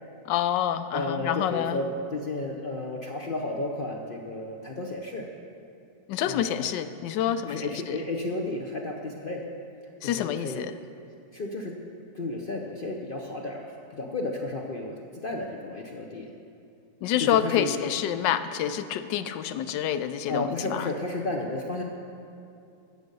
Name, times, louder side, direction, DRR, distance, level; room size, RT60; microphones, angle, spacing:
voice 1, 0.3-1.8 6.1-8.0 10.0-10.7 17.0-20.9, left 10 dB, 90° left, 11 dB, 1.2 m, -27 dB
voice 2, 0.9-5.3 6.3-6.6 7.5-9.5 10.0-10.6 11.3-11.8 12.1-16.3 17.2-17.8 20.3-21.8, left 2 dB, 65° left, 1 dB, 0.5 m, -32 dB
14.5 x 6.7 x 5.3 m, 2.6 s
omnidirectional pair, 1.9 m